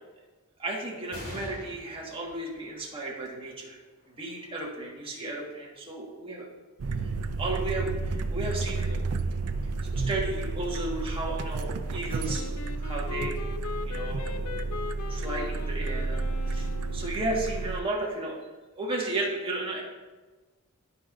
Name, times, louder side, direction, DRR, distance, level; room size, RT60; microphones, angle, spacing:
voice 1, 0.6-3.8 4.2-6.5 7.4-9.1 9.8-12.5 12.8-13.4 13.8-14.4 15.1-18.4 18.7-19.8, right 2 dB, 25° right, -3 dB, 1.6 m, -34 dB
sound 1, 1.1-8.0 8.6-8.7 9.8-10.4, left 1 dB, 45° left, 2.2 m, -49 dB
sound 2, 6.8-17.8, right 3 dB, 75° right, 0.5 m, -31 dB
Wind instrument woodwind instrument, 12.3-17.3, left 6 dB, 90° left, 0.5 m, -40 dB
14.0 x 5.1 x 2.6 m, 1.3 s
head